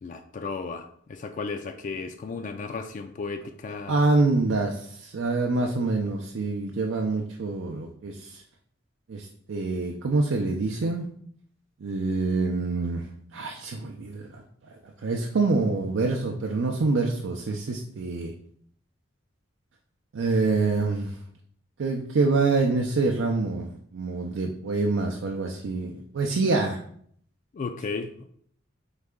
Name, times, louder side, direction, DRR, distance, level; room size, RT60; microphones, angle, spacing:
voice 1, 0.0-4.0 27.5-28.3, left 4 dB, 40° left, 6 dB, 0.3 m, -34 dB
voice 2, 3.9-8.4 9.1-11.1 11.8-13.0 13.3-14.4 14.8-18.3 20.1-21.1 21.8-26.8, right 3 dB, 75° right, 1 dB, 0.5 m, -26 dB
4.0 x 3.3 x 3.6 m, 0.63 s
head